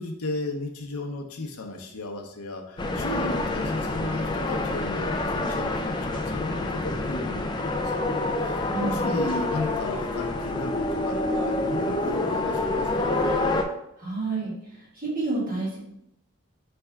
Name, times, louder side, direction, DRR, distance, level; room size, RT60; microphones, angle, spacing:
voice 1, 0.0-8.1 8.4-13.4, left 2 dB, 85° left, 3 dB, 0.7 m, -35 dB
sound 1, 2.8-13.6, left 2 dB, 20° left, 0.3 m, -27 dB
voice 2, 8.7-9.2 14.0-15.8, right 3 dB, 40° right, -6 dB, 1.7 m, -30 dB
4.4 x 3.4 x 3.5 m, 0.77 s
head